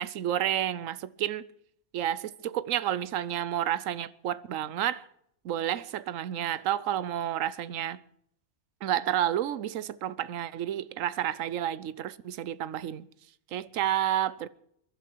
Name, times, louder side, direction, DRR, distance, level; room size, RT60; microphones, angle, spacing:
voice 1, 0.0-1.5 1.9-5.1 5.4-8.0 8.8-13.1 13.5-14.5, right 11 dB, 65° right, 1.1 m, -30 dB
22.0 x 12.0 x 4.6 m
omnidirectional pair, 1.6 m